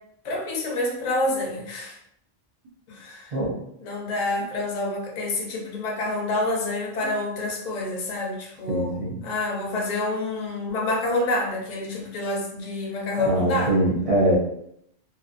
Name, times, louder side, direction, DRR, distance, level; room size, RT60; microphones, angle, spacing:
voice 1, 0.2-2.0 2.9-3.4 3.8-13.7, left 2 dB, 50° left, 0 dB, 0.6 m, -28 dB
voice 2, 3.3-3.6 7.0-7.1 8.7-9.3 13.2-14.4, right 1 dB, 40° right, -5 dB, 0.6 m, -23 dB
2.7 x 2.3 x 2.5 m, 0.74 s
omnidirectional pair, 1.0 m